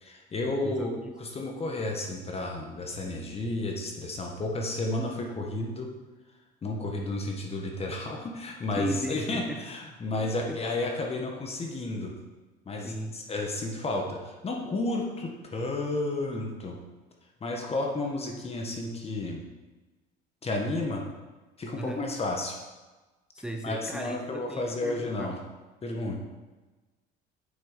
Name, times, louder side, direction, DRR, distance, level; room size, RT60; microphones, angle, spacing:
voice 1, 0.0-5.9 6.6-12.1 12.7-16.8 17.4-19.4 20.4-21.0 21.6-22.6 23.6-25.4 25.8-26.2, left 2 dB, 30° left, 1 dB, 1.5 m, -32 dB
voice 2, 0.6-1.1 8.8-9.6 10.2-10.6 12.8-13.2 21.8-22.0 23.3-25.4, right 1 dB, 5° right, 3 dB, 0.7 m, -36 dB
7.9 x 6.3 x 5.1 m, 1.2 s
supercardioid pair, 105°, 21 cm